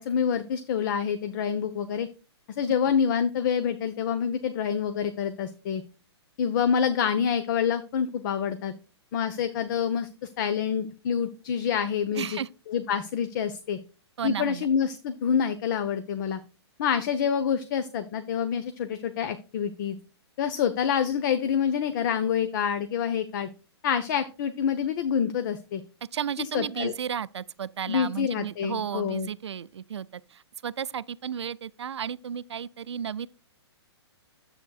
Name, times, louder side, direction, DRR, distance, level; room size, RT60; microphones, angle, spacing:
voice 1, 0.0-2.1 2.5-5.8 6.4-8.7 9.1-12.4 12.7-13.8 14.2-16.4 16.8-20.0 20.4-23.5 23.8-25.8 26.5-26.9 27.9-29.3, left 7 dB, 45° left, 0.8 m, -27 dB
voice 2, 12.1-12.5 14.2-14.7 26.1-33.3, right 8 dB, 75° right, 0.5 m, -33 dB
9.9 x 8.0 x 2.3 m
hypercardioid pair, 125°, 14 cm